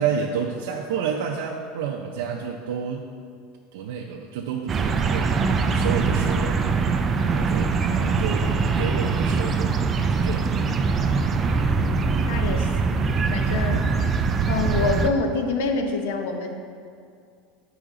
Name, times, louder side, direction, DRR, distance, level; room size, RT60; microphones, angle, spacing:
voice 1, 0.0-3.1 3.7-5.3 5.7-7.0 7.3-9.7 10.1-10.5, right 7 dB, 90° right, -1 dB, 0.5 m, -30 dB
sound 1, 4.7-15.1, right 4 dB, 20° right, 0.3 m, -22 dB
voice 2, 12.2-13.0 13.3-13.9 14.5-16.5, left 3 dB, 80° left, 5 dB, 0.7 m, -26 dB
8.1 x 5.0 x 3.7 m, 2.3 s
supercardioid pair, 170°, 0 cm